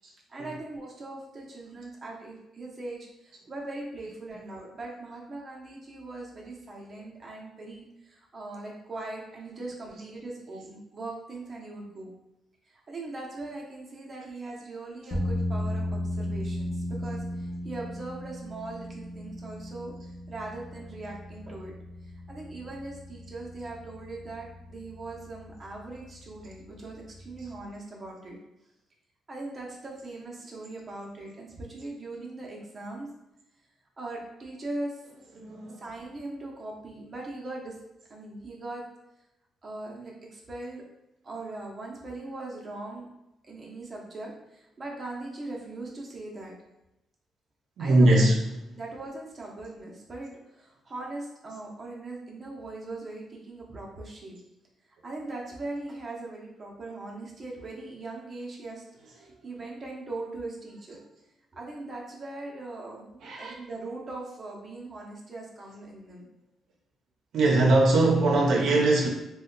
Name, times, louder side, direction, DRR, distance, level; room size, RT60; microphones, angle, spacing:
voice 1, 0.3-12.1 12.7-19.9 20.3-21.7 22.0-28.4 29.3-33.1 34.0-34.9 35.8-37.8 38.1-38.8 39.6-40.8 41.2-43.1 43.4-46.5 47.8-48.3 48.7-54.3 55.0-58.8 59.2-61.0 61.5-66.3, right 2 dB, 25° right, -3 dB, 0.7 m, -40 dB
sound 1, 15.1-27.6, left 1 dB, 20° left, 0.7 m, -36 dB
voice 2, 35.4-35.8 47.8-48.4 63.2-63.5 67.3-69.1, right 2 dB, 65° right, -1 dB, 0.6 m, -21 dB
2.7 x 2.1 x 3.8 m, 0.91 s
cardioid pair, 150°, 0 cm